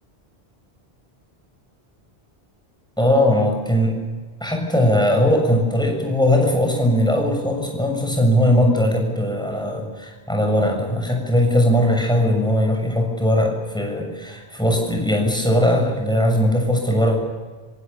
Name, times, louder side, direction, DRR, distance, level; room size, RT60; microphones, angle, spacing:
voice 1, 3.0-4.0 4.4-17.2, left 1 dB, 5° left, 1 dB, 7.2 m, -19 dB
26.0 x 26.0 x 7.1 m, 1.5 s
omnidirectional pair, 1.1 m